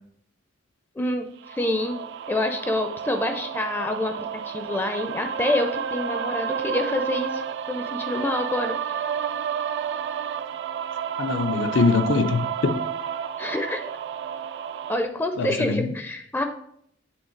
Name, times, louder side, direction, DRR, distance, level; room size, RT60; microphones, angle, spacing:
voice 1, 1.0-2.0 2.3-7.4 7.7-8.8 13.4-13.8 14.9-16.4, left 1 dB, 10° left, 0.4 m, -27 dB
sound 1, 1.4-15.0, right 7 dB, 65° right, 0.3 m, -31 dB
voice 2, 11.2-12.8 15.4-15.9, left 4 dB, 80° left, 0.6 m, -23 dB
8.1 x 3.1 x 4.4 m
head